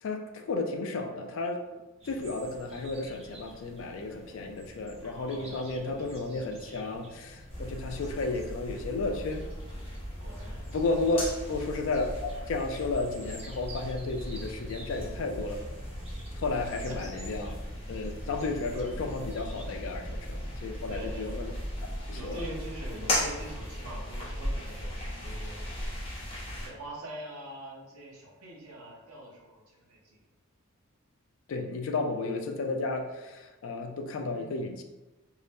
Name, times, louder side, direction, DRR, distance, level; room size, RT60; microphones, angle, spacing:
voice 1, 0.0-1.6 2.0-9.4 10.7-15.6 16.3-17.5 17.9-21.5 22.1-22.4 31.5-34.8, left 3 dB, 65° left, 4 dB, 0.3 m, -33 dB
sound 1, 2.0-22.0, right 1 dB, 30° right, 0.3 m, -50 dB
voice 2, 5.0-6.8 10.2-10.7 11.6-11.7 16.9-17.0 17.4-17.5 20.9-21.4 22.0-25.6 26.6-30.2 34.3-34.6, right 1 dB, 85° right, -2 dB, 0.7 m, -44 dB
sound 2, 7.5-26.7, left 1 dB, 25° left, 0.7 m, -37 dB
2.6 x 2.1 x 3.2 m, 1.1 s
head